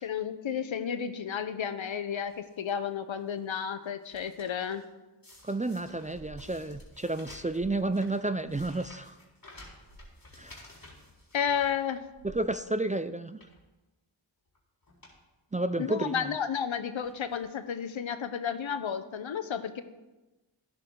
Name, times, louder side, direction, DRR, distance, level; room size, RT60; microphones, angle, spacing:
voice 1, 0.0-4.8 11.3-12.0 15.8-19.8, left 7 dB, 70° left, 11 dB, 1.0 m, -32 dB
sound 1, 2.3-2.7 3.3-4.8 5.2-12.3 12.7-12.8 13.3-13.6 14.5-14.6 14.8-15.2 15.5-15.6 16.5-16.6 17.0-17.5 18.3-18.4 18.5-18.6, left 2 dB, 45° left, 4.0 m, -54 dB
voice 2, 5.4-9.1 10.4-10.6 12.2-13.4 15.5-16.3, right 2 dB, 15° right, 11 dB, 0.4 m, -31 dB
sound 2, 6.1-6.9 7.5-7.9 8.5-8.7 9.8-10.1 12.2-12.5, equal, 40° right, 2.4 m, -51 dB
12.5 x 10.5 x 3.8 m, 1.1 s
cardioid pair, 45°, 49 cm